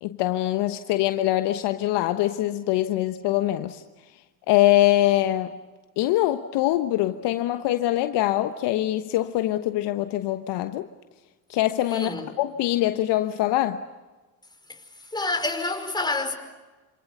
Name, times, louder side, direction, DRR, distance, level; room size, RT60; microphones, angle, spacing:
voice 1, 0.0-3.8 4.5-5.6 6.0-10.8 11.5-13.8, left 14 dB, 55° left, 1.2 m, -23 dB
voice 2, 11.9-12.3 14.7-16.3, left 2 dB, 10° left, 4.9 m, -28 dB
27.5 x 27.0 x 6.9 m
hypercardioid pair, 65°, 48 cm